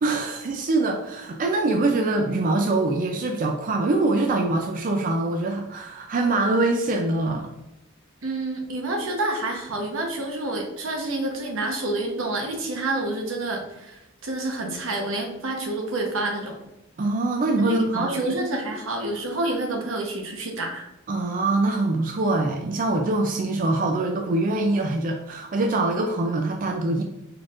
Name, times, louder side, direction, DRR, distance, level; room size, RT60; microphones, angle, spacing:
voice 1, 0.0-7.5 17.0-18.4 21.1-27.0, right 2 dB, 45° right, 3 dB, 0.4 m, -24 dB
voice 2, 8.2-16.6 17.7-20.9, right 2 dB, 80° right, 2 dB, 1.0 m, -28 dB
4.5 x 4.2 x 2.4 m, 0.91 s
head